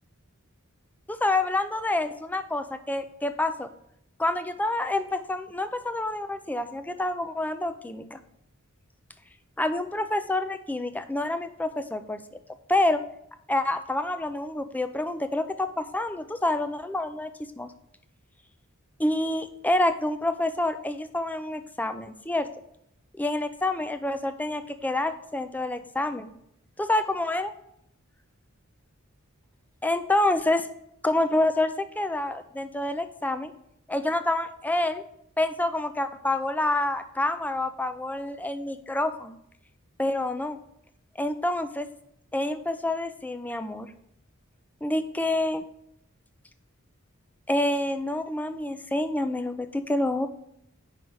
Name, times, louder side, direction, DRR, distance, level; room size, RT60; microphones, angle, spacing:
voice 1, 1.1-3.7 4.2-8.2 9.6-12.2 12.7-13.0 13.5-17.3 17.6-17.7 19.0-22.5 23.2-26.3 26.8-27.5 29.8-30.7 31.0-33.5 33.9-35.0 35.4-39.4 40.0-40.6 41.2-41.9 42.3-43.9 44.8-45.6 47.5-50.3, left 2 dB, 10° left, 9 dB, 0.4 m, -27 dB
5.3 x 4.9 x 6.1 m, 0.75 s
head